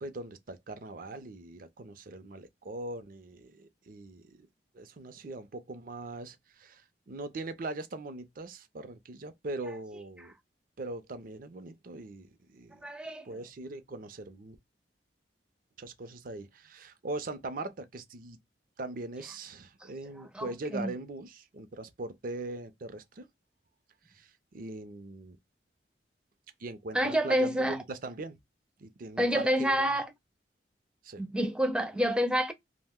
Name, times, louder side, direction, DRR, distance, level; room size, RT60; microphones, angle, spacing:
voice 1, 0.0-4.5 4.7-10.3 10.8-12.8 13.3-14.6 15.8-18.4 18.8-23.3 24.1-25.4 26.6-28.4 28.8-30.0 31.0-31.2, right 2 dB, 50° right, 0.5 m, -41 dB
voice 2, 12.8-13.4 19.8-19.9 20.3-20.9 26.9-27.8 29.2-30.1 31.2-32.5, equal, 5° right, 0.5 m, -28 dB
2.5 x 2.1 x 3.5 m
head